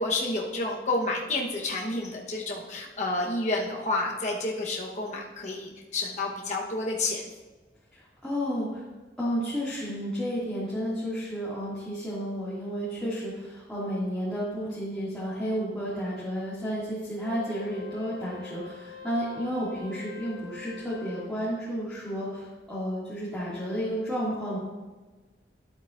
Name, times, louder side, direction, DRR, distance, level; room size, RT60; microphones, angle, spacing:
voice 1, 0.0-7.2, left 2 dB, 40° left, -3 dB, 1.1 m, -30 dB
voice 2, 7.9-8.8 9.2-24.6, equal, 5° left, -11 dB, 2.2 m, -32 dB
Wind instrument woodwind instrument, 17.1-21.4, left 6 dB, 70° right, 1.6 m, -45 dB
12.0 x 7.9 x 2.5 m, 1.3 s
head